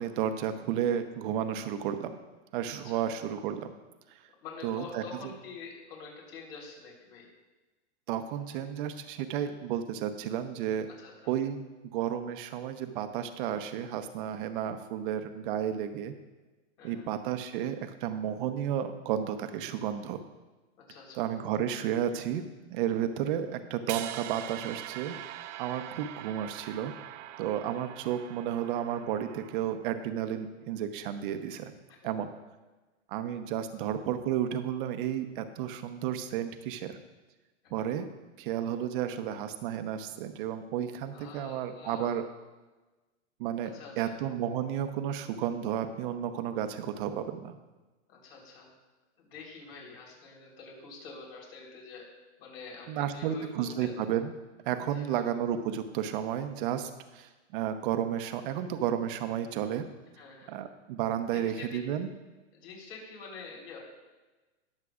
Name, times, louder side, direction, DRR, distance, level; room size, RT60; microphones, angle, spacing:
voice 1, 0.0-2.2 2.5-3.7 4.6-5.0 8.1-10.9 11.3-11.6 11.9-16.1 16.8-20.2 21.1-22.4 22.7-25.2 25.6-26.9 27.4-31.7 32.0-32.3 33.1-37.0 37.7-38.1 38.4-42.2 43.4-47.6 52.9-54.3 54.6-59.9 60.5-62.1, right 10 dB, 45° right, 8 dB, 0.9 m, -32 dB
voice 2, 2.7-3.0 4.4-7.3 8.5-8.7 10.9-11.3 14.5-14.6 16.8-17.1 20.8-21.2 32.0-32.1 33.7-33.8 41.1-42.2 43.6-44.2 48.1-48.7 49.2-52.1 52.4-53.9 54.9-55.2 60.1-60.6 61.3-61.8 62.5-63.8, left 4 dB, 60° left, -2 dB, 3.9 m, -47 dB
sound 1, 23.9-30.0, right 12 dB, 85° right, 0.6 m, -42 dB
20.5 x 7.4 x 2.5 m, 1.2 s
supercardioid pair, 150°, 36 cm